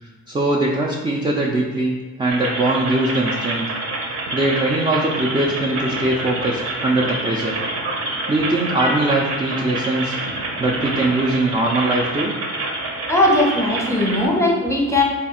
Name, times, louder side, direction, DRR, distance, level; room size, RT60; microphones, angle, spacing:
voice 1, 0.0-3.7 4.3-7.6 8.3-10.2 10.6-12.3, right 2 dB, 15° right, -2 dB, 0.4 m, -21 dB
Old Gas Pump, 2.3-14.3, right 2 dB, 55° right, 0.8 m, -27 dB
voice 2, 13.1-15.0, left 1 dB, 10° left, -1 dB, 0.8 m, -18 dB
3.3 x 2.4 x 4.2 m, 1.3 s
cardioid pair, 90°, 30 cm